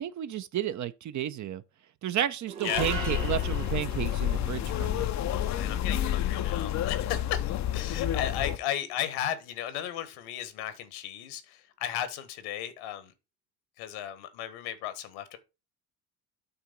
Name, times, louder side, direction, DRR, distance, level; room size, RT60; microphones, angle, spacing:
voice 1, 0.0-1.6 2.0-5.0, right 11 dB, 35° right, 0.7 m, -32 dB
sound 1, 2.5-8.9, right 6 dB, 85° right, 1.4 m, -42 dB
sound 2, 2.7-8.6, left 11 dB, 35° left, 0.6 m, -29 dB
voice 2, 5.3-13.1 13.8-15.4, left 11 dB, 70° left, 1.5 m, -35 dB
8.8 x 3.6 x 5.2 m
hypercardioid pair, 65°, 49 cm